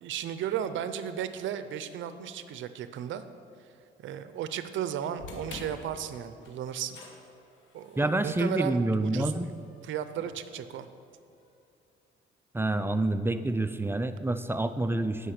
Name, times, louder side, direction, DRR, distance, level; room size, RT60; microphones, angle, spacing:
voice 1, 0.0-3.2 4.0-7.0 7.7-9.3 9.8-10.9, right 9 dB, 75° right, 11 dB, 0.5 m, -35 dB
sound 1, 5.2-11.4, left 3 dB, 75° left, 1.3 m, -50 dB
voice 2, 8.0-9.5 12.5-15.3, right 2 dB, 10° right, 11 dB, 0.4 m, -27 dB
9.9 x 5.0 x 6.6 m, 2.5 s
cardioid pair, 90°, 20 cm